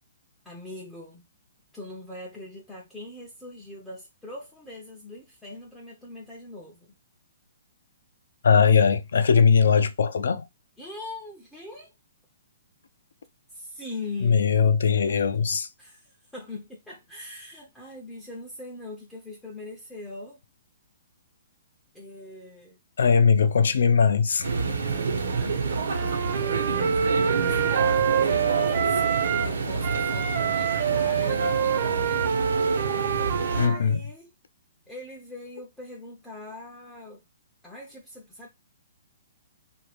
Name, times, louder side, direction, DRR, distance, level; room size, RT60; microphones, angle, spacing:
voice 1, 0.4-1.3 1.7-6.9 10.8-11.9 13.5-14.5 15.8-20.4 21.9-22.8 24.5-25.8 26.5-29.1 29.4-32.3 33.5-34.3 34.9-37.2 37.6-38.5, left 2 dB, 5° left, 0.4 m, -42 dB
voice 2, 8.4-10.4 14.2-15.7 23.0-24.5 33.6-34.0, left 6 dB, 75° left, 0.5 m, -20 dB
sound 1, 24.4-33.7, right 4 dB, 90° right, 0.9 m, -28 dB
Wind instrument woodwind instrument, 25.8-29.5 29.8-33.8, right 8 dB, 45° right, 0.6 m, -26 dB
3.0 x 2.5 x 3.3 m
hypercardioid pair, 170°, 0 cm